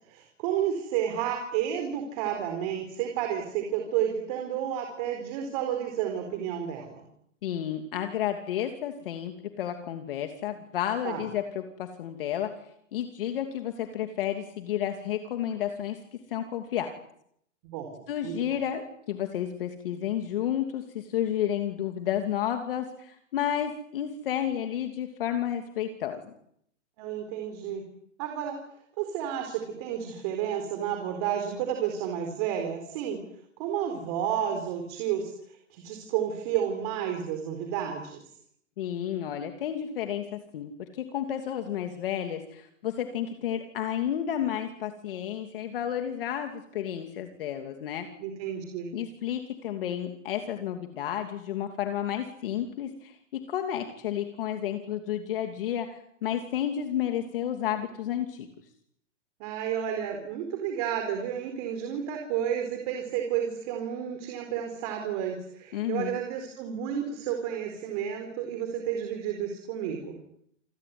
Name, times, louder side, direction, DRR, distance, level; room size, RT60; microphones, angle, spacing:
voice 1, 0.1-7.1 11.0-11.2 17.6-18.3 27.0-27.8 28.2-28.6 29.0-33.2 33.6-38.2 48.2-48.9 59.4-70.2, right 9 dB, 30° right, 4 dB, 4.3 m, -31 dB
voice 2, 7.4-12.5 12.9-16.0 16.3-16.9 18.1-26.2 38.8-48.1 48.9-58.5 65.7-66.2, left 10 dB, 45° left, 5 dB, 2.9 m, -31 dB
28.5 x 21.0 x 9.7 m, 0.73 s
hypercardioid pair, 170°, 37 cm